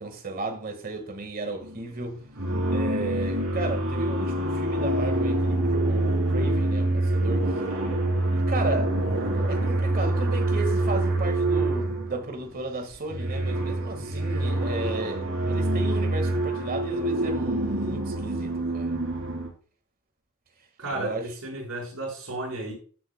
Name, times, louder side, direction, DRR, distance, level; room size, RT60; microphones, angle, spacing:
voice 1, 0.0-2.2 2.7-7.6 8.3-19.0 20.9-21.3, right 2 dB, 45° right, 1.7 m, -34 dB
sound 1, 1.6-1.9 2.3-12.4 12.9-19.5, right 1 dB, 65° right, 3.1 m, -26 dB
voice 2, 20.8-22.7, right 2 dB, 90° right, 5.0 m, -33 dB
15.5 x 7.5 x 2.2 m
head